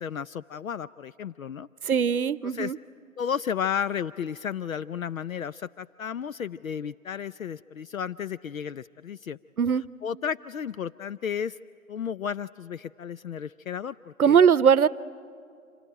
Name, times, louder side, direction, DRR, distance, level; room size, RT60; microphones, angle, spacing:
voice 1, 0.0-1.7 2.4-2.7 3.2-9.4 10.0-11.6 11.9-14.4, left 8 dB, 70° left, 15 dB, 0.5 m, -33 dB
voice 2, 1.8-2.8 9.6-9.8 14.2-14.9, right 7 dB, 85° right, 18 dB, 0.8 m, -20 dB
26.5 x 17.5 x 10.0 m, 2.3 s
figure-of-eight pair, 165°, 42 cm